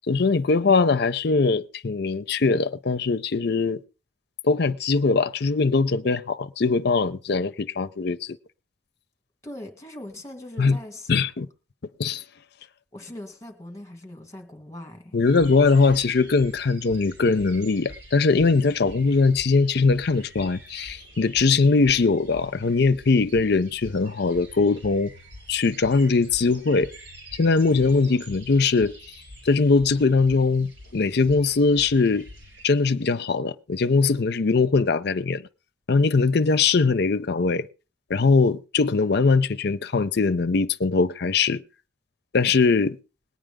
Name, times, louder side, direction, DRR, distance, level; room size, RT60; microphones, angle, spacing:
voice 1, 0.1-3.8 4.4-8.4 10.6-10.8 11.1-11.5 12.0-12.2 15.1-25.1 25.5-26.9 27.4-28.9 29.5-32.3 32.6-35.5 35.9-37.7 38.1-41.6 42.3-43.0, left 4 dB, 65° left, 0.6 m, -21 dB
voice 2, 9.4-11.1 12.9-15.2, left 1 dB, 20° left, 2.3 m, -40 dB
sound 1, 15.2-32.7, equal, 85° right, 5.2 m, -46 dB
21.0 x 9.1 x 3.6 m
head